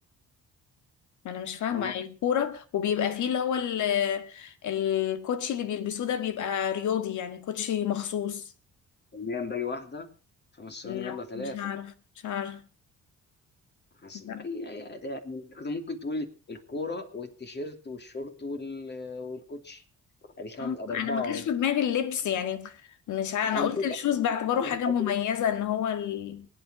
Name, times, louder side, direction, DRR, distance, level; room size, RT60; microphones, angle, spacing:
voice 1, 1.2-8.5 10.8-11.9 12.2-12.6 14.1-14.4 20.6-22.8 23.1-26.5, left 9 dB, 75° left, 2.0 m, -29 dB
voice 2, 9.1-10.1 10.5-11.7 14.0-19.8 20.4-21.5 23.5-24.0 24.6-24.7 25.0-25.1, left 3 dB, 35° left, 2.9 m, -36 dB
23.0 x 9.2 x 5.0 m
cardioid pair, 90°, 30 cm